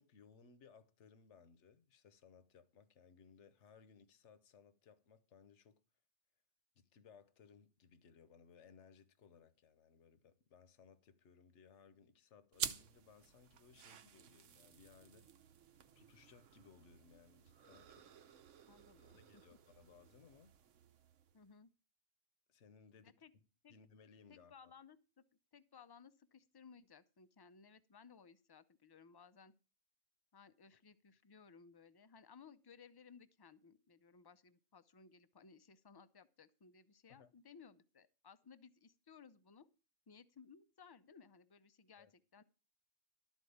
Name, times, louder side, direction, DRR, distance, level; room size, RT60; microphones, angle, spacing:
voice 1, 0.0-5.8 6.8-15.5 15.9-18.1 19.1-20.5 22.5-23.1 23.7-24.7 37.1-37.3 42.0-42.1, left 6 dB, 75° left, 1.2 m, -64 dB
sound 1, 12.5-21.5, right 8 dB, 85° right, 1.1 m, -50 dB
voice 2, 18.6-19.4 21.3-21.7 23.0-23.3 23.6-23.7 24.3-25.2 25.5-29.5 30.3-39.7 40.1-42.4, left 6 dB, 35° left, 0.4 m, -61 dB
12.5 x 4.4 x 8.5 m
omnidirectional pair, 1.2 m